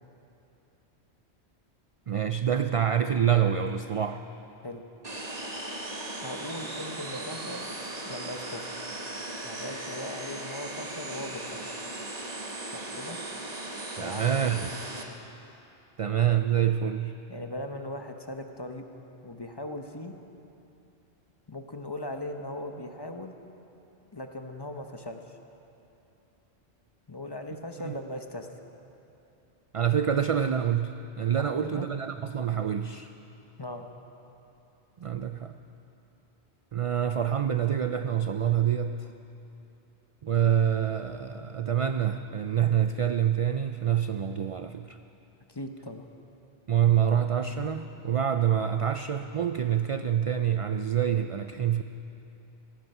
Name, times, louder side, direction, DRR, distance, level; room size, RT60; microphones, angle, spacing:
voice 1, 2.1-4.2 14.0-14.7 16.0-17.2 27.8-27.9 29.7-33.1 35.0-35.5 36.7-39.1 40.2-45.0 46.7-51.8, right 9 dB, 60° right, 8 dB, 0.3 m, -26 dB
sound 1, 5.0-15.0, right 2 dB, 40° right, 1.3 m, -37 dB
voice 2, 6.2-7.7 8.0-8.6 9.4-11.6 12.7-13.2 14.0-14.7 17.3-18.8 19.2-20.1 21.5-23.3 24.1-25.4 27.1-28.5 31.4-31.9 33.6-33.9 45.5-46.1, left 1 dB, 25° left, 5 dB, 0.8 m, -39 dB
17.0 x 15.0 x 5.5 m, 2.8 s
omnidirectional pair, 1.1 m